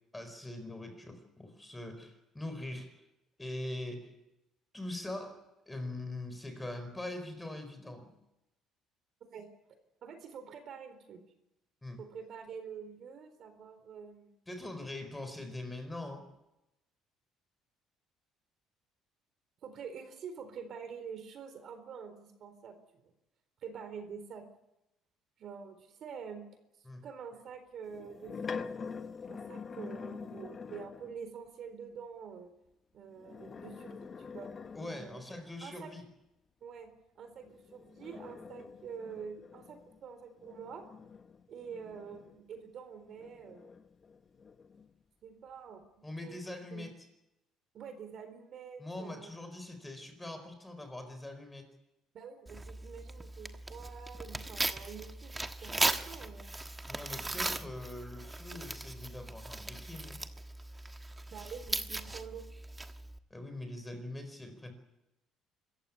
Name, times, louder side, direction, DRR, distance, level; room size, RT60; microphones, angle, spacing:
voice 1, 0.1-3.0 3.4-4.1 4.7-8.1 11.8-12.0 14.5-16.3 26.8-27.0 34.7-36.1 46.0-47.1 48.8-51.7 56.9-60.2 63.3-64.7, left 1 dB, 10° left, 8 dB, 4.5 m, -42 dB
voice 2, 10.0-11.2 12.0-14.3 19.6-22.7 23.6-24.4 25.4-26.4 27.0-28.6 29.3-32.5 32.9-34.5 35.0-35.2 35.6-35.9 36.6-36.9 37.2-40.8 41.5-43.7 45.2-45.8 46.2-46.4 46.7-46.9 47.7-49.3 52.1-55.3 55.6-56.5 57.3-57.7 61.3-62.5, right 6 dB, 50° right, 9 dB, 4.1 m, -46 dB
sound 1, 27.9-31.2 33.1-35.5 37.4-42.6 43.2-44.9, left 5 dB, 30° left, 0.9 m, -45 dB
Tearing, 52.5-63.2, right 2 dB, 15° right, 1.3 m, -38 dB
25.5 x 15.0 x 9.8 m, 0.91 s
cardioid pair, 130°, 0 cm